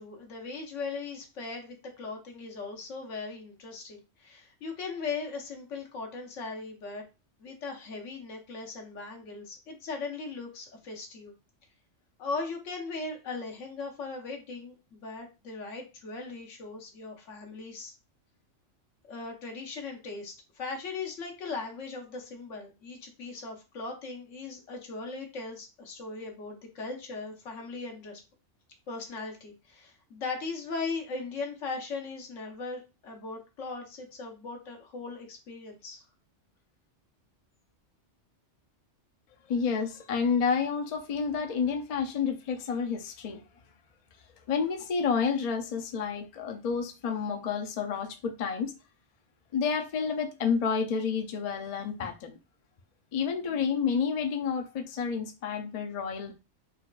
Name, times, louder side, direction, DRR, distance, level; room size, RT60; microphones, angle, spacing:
voice 1, 0.0-7.0 7.4-11.3 12.2-17.9 19.1-28.2 28.9-36.0, left 4 dB, 85° left, 1.2 m, -38 dB
voice 2, 39.5-43.4 44.5-48.7 49.5-52.4 53.1-56.3, left 6 dB, 60° left, 0.4 m, -30 dB
4.1 x 2.2 x 2.4 m
omnidirectional pair, 1.2 m